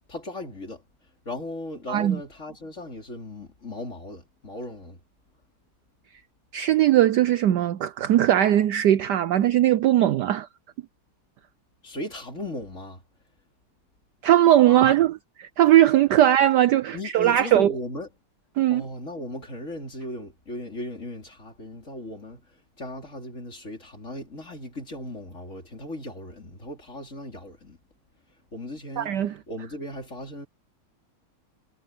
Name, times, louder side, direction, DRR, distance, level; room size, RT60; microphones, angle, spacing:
voice 1, 0.1-0.8 1.3-5.0 11.8-13.0 14.7-15.0 16.9-18.1 18.7-22.5 22.8-27.8 28.5-29.2 29.5-30.5, left 1 dB, 35° left, 4.1 m, -37 dB
voice 2, 1.9-2.2 6.5-10.5 14.2-17.7 18.6-18.8 29.0-29.3, right 12 dB, 70° right, 1.0 m, -19 dB
omnidirectional pair, 2.3 m